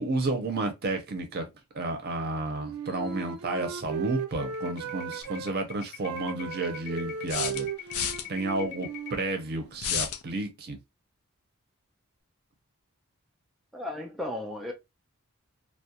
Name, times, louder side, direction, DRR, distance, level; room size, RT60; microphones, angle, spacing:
voice 1, 0.0-1.4 1.7-7.7 8.3-10.8, right 2 dB, 50° right, 0.6 m, -31 dB
Wind instrument woodwind instrument, 2.5-5.5 6.0-9.8, right 6 dB, 85° right, 0.4 m, -37 dB
sound 1, 2.8-3.3 3.6-3.7 4.1-9.3, left 13 dB, 50° left, 0.8 m, -42 dB
sound 2, 5.2-5.3 7.3-8.3 9.8-10.2, left 8 dB, 85° left, 0.4 m, -30 dB
voice 2, 13.7-14.7, left 1 dB, ahead, 0.3 m, -35 dB
2.3 x 2.1 x 2.6 m
head